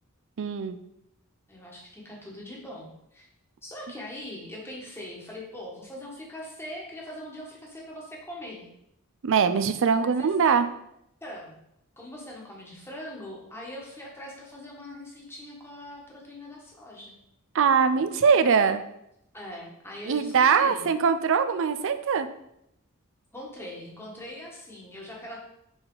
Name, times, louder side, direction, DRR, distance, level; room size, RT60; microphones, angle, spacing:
voice 1, 0.4-0.8 9.2-10.6 17.5-18.8 20.1-22.3, right 6 dB, 60° right, 11 dB, 0.4 m, -22 dB
voice 2, 1.5-3.3 3.6-8.7 10.0-10.3 11.2-11.6 12.0-17.1 19.3-20.9 23.3-25.4, left 1 dB, 10° left, -3 dB, 1.3 m, -41 dB
5.9 x 4.1 x 3.9 m, 0.79 s
head